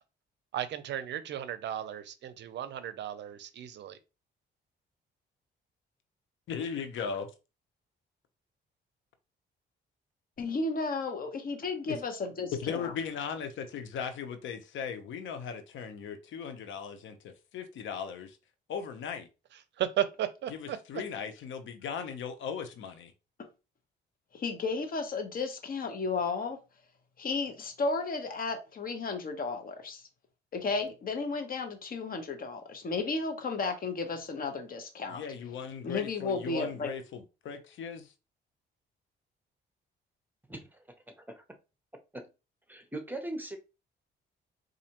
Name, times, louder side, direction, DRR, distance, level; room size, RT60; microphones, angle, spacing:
voice 1, 0.5-4.0 19.8-20.8, right 11 dB, 65° right, 0.5 m, -34 dB
voice 2, 6.5-7.3 11.9-12.0 12.6-18.4 18.7-19.3 20.5-23.1 35.1-38.1, left 6 dB, 75° left, 0.8 m, -38 dB
voice 3, 10.4-12.9 24.3-26.6 27.2-30.0 30.5-35.2 35.8-36.9, left 4 dB, 45° left, 1.0 m, -33 dB
voice 4, 40.5-41.4 42.1-42.3 42.7-43.6, right 1 dB, 10° right, 0.8 m, -40 dB
4.2 x 2.6 x 2.9 m
cardioid pair, 90°, 20 cm